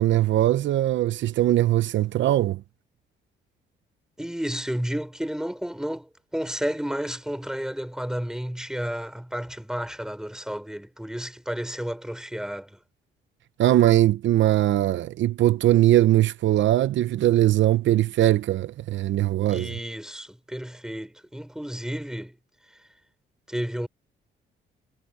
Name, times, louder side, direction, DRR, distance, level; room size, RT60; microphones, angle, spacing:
voice 1, 0.0-2.6 13.6-19.7, right 13 dB, 70° right, 0.7 m, -21 dB
voice 2, 4.2-12.8 19.3-22.4 23.5-23.9, equal, 5° right, 4.7 m, -32 dB
cardioid pair, 90°, 20 cm